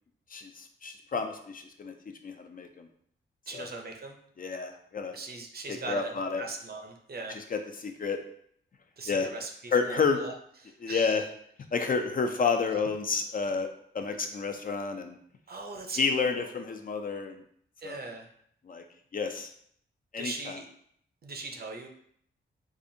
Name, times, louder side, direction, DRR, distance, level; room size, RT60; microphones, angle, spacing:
voice 1, 0.3-1.9 2.2-2.9 3.5-3.7 4.4-5.1 5.7-6.4 7.5-8.2 9.1-9.3 9.7-10.2 10.8-11.2 11.7-13.7 13.9-15.2 16.0-17.4 17.8-18.0 18.7-18.8 19.1-19.5 20.1-20.3, left 5 dB, 45° left, 6 dB, 0.4 m, -30 dB
voice 2, 3.5-4.2 5.1-7.4 9.0-10.3 10.6-11.3 15.5-16.5 17.8-18.3 20.2-20.7 21.2-21.9, right 3 dB, 50° right, 3 dB, 0.7 m, -40 dB
4.8 x 2.5 x 2.7 m, 0.66 s
wide cardioid pair, 95°, 21 cm